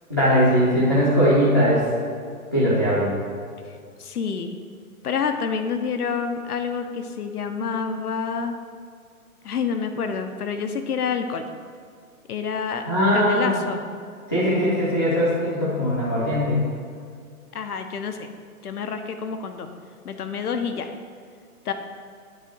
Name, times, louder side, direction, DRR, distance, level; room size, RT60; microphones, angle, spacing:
voice 1, 0.1-1.8 2.5-3.1 12.9-13.6 14.3-16.6, equal, 15° left, -10 dB, 0.6 m, -20 dB
voice 2, 3.7-4.6 5.0-8.5 9.4-11.4 12.3-12.8 13.1-13.8 17.5-18.3 18.6-19.7 20.0-20.9 21.6-21.7, left 6 dB, 85° left, 7 dB, 1.0 m, -28 dB
9.0 x 3.5 x 6.2 m, 2.2 s
hypercardioid pair, 180°, 44 cm